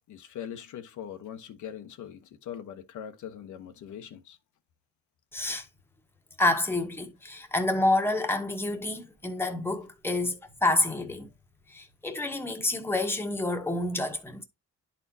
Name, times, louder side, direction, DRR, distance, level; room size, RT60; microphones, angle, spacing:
voice 1, 0.1-4.4, left 9 dB, 75° left, 1.1 m, -41 dB
voice 2, 5.3-5.7 6.4-11.3 11.7-14.4, left 2 dB, 10° left, 1.2 m, -28 dB
10.5 x 4.3 x 2.7 m
cardioid pair, 90°, 30 cm